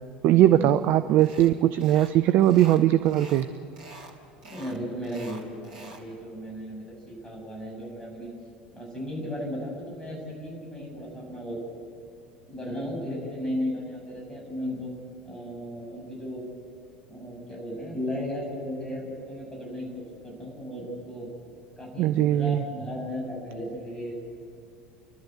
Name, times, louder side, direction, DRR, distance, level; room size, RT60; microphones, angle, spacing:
voice 1, 0.2-3.5 22.0-22.6, right 12 dB, 45° right, 12 dB, 0.5 m, -20 dB
sound 1, 1.2-1.5 1.8-2.1 2.4-3.5 3.8-4.1 4.4-6.1, right 2 dB, 60° right, 2.9 m, -46 dB
voice 2, 4.4-8.3 8.7-11.6 12.5-14.9 15.3-16.4 17.1-21.3 21.8-24.1, equal, 15° left, -1 dB, 7.2 m, -35 dB
29.5 x 12.5 x 8.2 m, 2.5 s
figure-of-eight pair, 70°, 5 cm